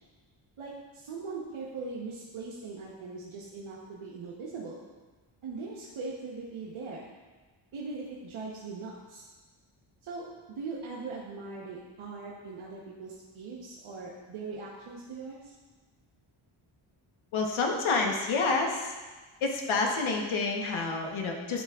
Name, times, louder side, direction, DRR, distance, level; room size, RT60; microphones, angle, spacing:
voice 1, 0.6-4.9 5.4-7.1 7.7-9.2 10.0-10.3 10.6-15.5, right 4 dB, 85° right, -4 dB, 1.0 m, -40 dB
voice 2, 17.3-18.9 19.4-21.6, left 3 dB, 75° left, 1 dB, 1.1 m, -28 dB
9.8 x 5.8 x 2.4 m, 1.3 s
wide cardioid pair, 180°, 48 cm